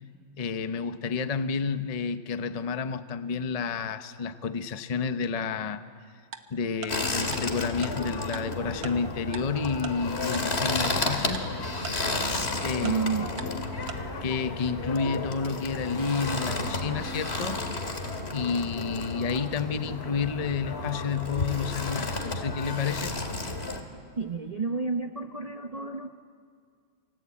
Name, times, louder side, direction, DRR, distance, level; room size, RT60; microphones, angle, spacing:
voice 1, 0.4-5.8 6.5-11.5 12.6-13.0 13.3-13.6 13.9-17.6 18.3-23.1, left 5 dB, 50° left, 10 dB, 0.4 m, -30 dB
Tick-tock, 6.3-6.4 6.8-6.9 7.3-7.4 7.8-7.9 8.3-8.4 8.8-8.9 9.3-9.4 9.8-9.9 10.3-10.4 10.8-10.9 11.3-11.4 11.8-11.9 12.3-12.4 12.8-12.9 13.4-13.5 13.9-14.0, right 9 dB, 90° right, 2.1 m, -38 dB
sound 1, 6.9-23.8, left 2 dB, 30° left, 2.5 m, -32 dB
voice 2, 12.8-13.3 24.2-26.1, right 4 dB, 50° right, 5 dB, 0.4 m, -30 dB
29.0 x 23.5 x 8.6 m, 2.2 s
omnidirectional pair, 2.2 m